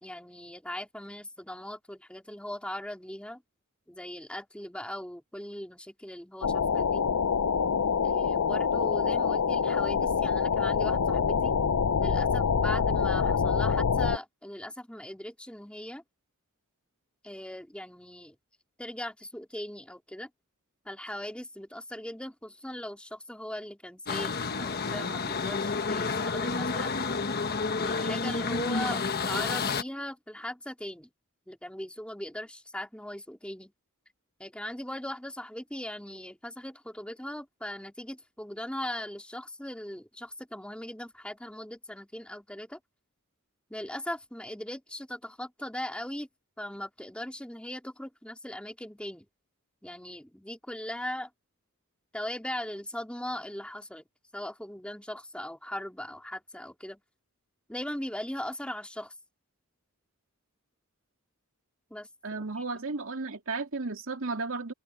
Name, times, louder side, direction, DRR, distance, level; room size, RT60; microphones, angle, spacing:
voice 1, 0.0-3.4 3.9-7.0 8.0-11.6 12.0-16.0 17.2-18.3 18.8-20.3 20.8-27.0 27.8-31.1 31.5-33.7 34.4-42.8 43.7-46.3 46.6-49.3 49.8-51.3 52.1-54.0 54.3-57.0 57.7-59.1 61.9-62.4, left 1 dB, 5° left, 3.1 m, -39 dB
sound 1, 6.4-14.2, left 6 dB, 90° left, 0.6 m, -26 dB
sound 2, 24.1-29.8, left 4 dB, 45° left, 1.3 m, -30 dB
voice 2, 62.2-64.7, right 3 dB, 65° right, 2.8 m, -34 dB
head